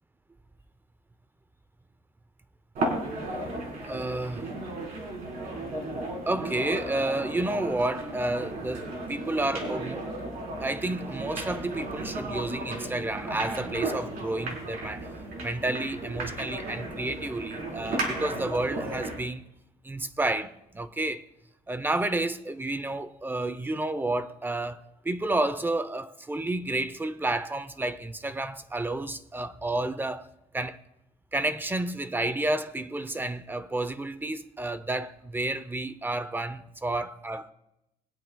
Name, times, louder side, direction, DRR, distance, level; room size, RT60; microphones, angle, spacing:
sound 1, 2.8-19.3, right 2 dB, 60° right, 4.0 m, -34 dB
voice 1, 3.8-4.4 6.3-10.1 10.6-15.1 15.4-19.5 19.8-21.3 21.7-30.3 30.5-30.8 31.3-37.5, right 2 dB, 10° right, 0.7 m, -30 dB
23.0 x 8.7 x 2.3 m
cardioid pair, 110°, 17 cm